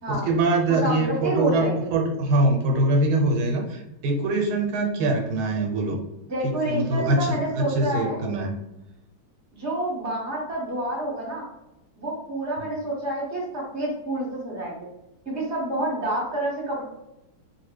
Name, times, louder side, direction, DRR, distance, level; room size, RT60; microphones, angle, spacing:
voice 1, 0.1-6.0 6.7-8.5, right 2 dB, 80° right, 1 dB, 1.6 m, -23 dB
voice 2, 0.7-1.9 6.3-8.2 9.5-11.4 12.0-14.7 15.2-16.8, right 1 dB, 10° right, -4 dB, 0.9 m, -28 dB
3.2 x 2.5 x 3.1 m, 0.91 s
omnidirectional pair, 2.3 m